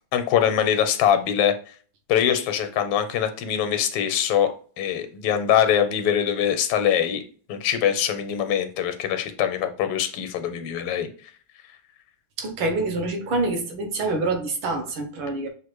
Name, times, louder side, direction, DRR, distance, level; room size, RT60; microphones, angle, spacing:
voice 1, 0.1-1.5 2.1-7.2 7.5-11.1, left 9 dB, 85° left, 9 dB, 1.6 m, -23 dB
voice 2, 12.4-15.5, right 2 dB, 70° right, 3 dB, 1.6 m, -26 dB
6.3 x 2.4 x 3.0 m, 0.42 s
omnidirectional pair, 2.4 m